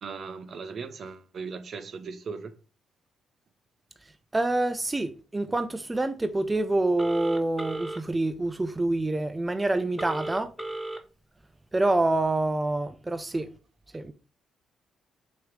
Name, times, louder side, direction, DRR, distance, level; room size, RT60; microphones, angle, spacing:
voice 1, 0.0-2.5, right 5 dB, 50° right, 0.9 m, -38 dB
voice 2, 4.3-10.5 11.7-13.5 13.9-14.1, right 2 dB, 15° right, 0.6 m, -26 dB
Telephone, 7.0-8.0 10.0-11.0, right 1 dB, ahead, 1.2 m, -34 dB
6.2 x 3.1 x 5.2 m
cardioid pair, 90°, 0 cm